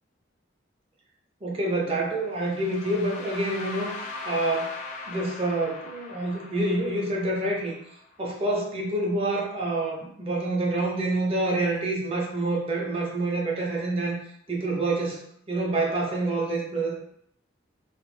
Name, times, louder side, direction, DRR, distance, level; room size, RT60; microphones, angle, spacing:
voice 1, 1.4-3.9 4.3-4.8 5.1-7.7 8.2-14.2 14.5-15.2 15.5-16.9, right 2 dB, 30° right, -2 dB, 0.4 m, -27 dB
sound 1, 2.3-8.3, left 3 dB, 40° left, 0.3 m, -40 dB
2.1 x 2.0 x 3.0 m, 0.68 s
head